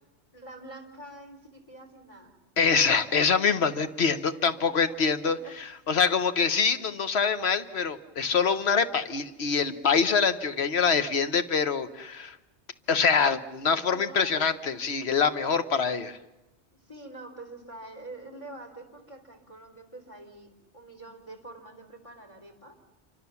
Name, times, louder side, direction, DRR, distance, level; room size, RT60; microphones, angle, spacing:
voice 1, 0.3-2.3 3.8-3.9 4.2-4.4 4.9-5.5 13.9-14.6 16.7-22.8, right 2 dB, 30° left, 6 dB, 3.8 m, -46 dB
voice 2, 2.6-12.4 12.9-16.2, left 5 dB, 65° left, 11 dB, 1.4 m, -25 dB
27.5 x 25.0 x 7.1 m, 0.99 s
omnidirectional pair, 1.2 m